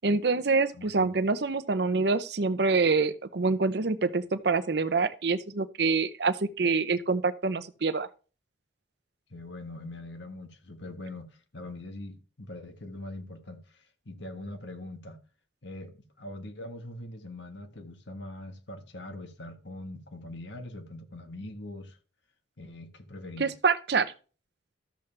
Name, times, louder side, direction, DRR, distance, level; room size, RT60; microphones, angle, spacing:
voice 1, 0.0-8.1 23.4-24.1, right 4 dB, 60° right, 0.6 m, -26 dB
voice 2, 0.7-1.1 9.3-15.2 15.6-22.0 22.6-23.5, left 1 dB, 70° left, 1.4 m, -42 dB
13.0 x 7.1 x 3.3 m
head